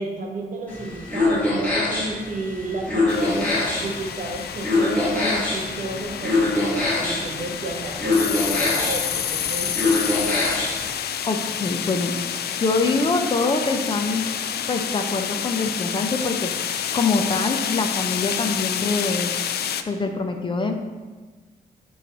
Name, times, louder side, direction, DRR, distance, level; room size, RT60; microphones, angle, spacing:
voice 1, 0.0-9.9, right 2 dB, 55° right, 0 dB, 1.2 m, -32 dB
sound 1, 0.7-10.9, left 2 dB, 10° left, 2.0 m, -24 dB
sound 2, 3.1-19.8, left 9 dB, 90° left, 0.4 m, -29 dB
voice 2, 11.2-12.1 12.6-14.3 14.7-19.3 19.9-20.7, left 3 dB, 30° left, 5 dB, 0.5 m, -24 dB
8.0 x 3.1 x 5.9 m, 1.3 s
wide cardioid pair, 165°, 16 cm